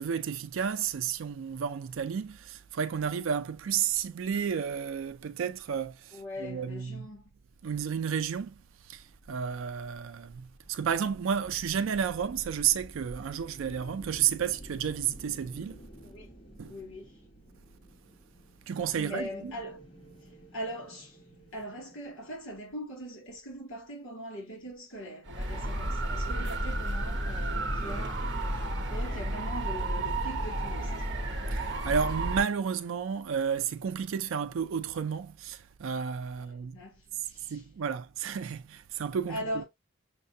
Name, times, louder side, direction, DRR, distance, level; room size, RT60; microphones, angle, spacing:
voice 1, 0.0-7.0 7.6-15.8 16.6-16.7 18.7-19.5 31.5-36.8 37.1-39.6, right 7 dB, 70° right, 0.4 m, -32 dB
voice 2, 6.1-7.2 16.0-16.3 16.7-17.2 18.9-19.8 20.2-21.2 21.5-28.3 28.9-30.9 36.6-37.6 39.3-39.6, equal, 75° left, 2.2 m, -41 dB
sound 1, 9.0-22.3, right 1 dB, 25° left, 1.2 m, -51 dB
sound 2, 25.2-32.4, right 1 dB, 55° right, 0.9 m, -32 dB
6.4 x 2.2 x 2.6 m
head